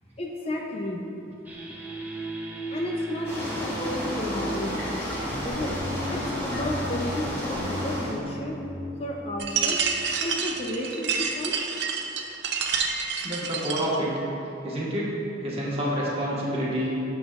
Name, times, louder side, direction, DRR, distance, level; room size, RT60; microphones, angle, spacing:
voice 1, 0.2-1.1 2.7-4.8 5.4-5.8 6.1-8.6 9.0-9.8 10.2-11.5, left 1 dB, 30° left, -1 dB, 0.6 m, -32 dB
sound 1, 1.4-10.8, equal, 10° right, 0.8 m, -36 dB
sound 2, 3.2-8.2, equal, 15° left, 1.7 m, -32 dB
sound 3, 9.4-14.0, right 6 dB, 60° right, 0.6 m, -28 dB
voice 2, 13.2-14.1 14.6-15.1 15.4-16.9, equal, 30° right, -6 dB, 1.4 m, -28 dB
9.9 x 7.1 x 2.4 m, 2.9 s
head